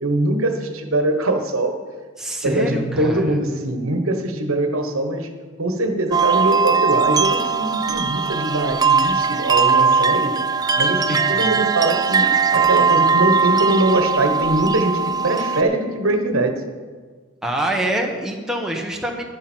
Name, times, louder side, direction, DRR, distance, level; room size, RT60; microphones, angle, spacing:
voice 1, 0.0-1.8 2.4-5.3 5.6-10.3 10.8-16.6, right 2 dB, 70° right, 6 dB, 1.3 m, -22 dB
voice 2, 2.2-3.4 10.9-11.6 17.4-19.2, right 1 dB, ahead, 0 dB, 1.1 m, -26 dB
Keyboard (musical), 2.6-6.4, right 2 dB, 35° right, 0.8 m, -38 dB
sound 1, 6.1-15.6, right 5 dB, 20° right, 0.4 m, -19 dB
sound 2, 8.2-16.3, left 7 dB, 30° left, 1.5 m, -43 dB
11.5 x 11.0 x 4.5 m, 1.5 s
head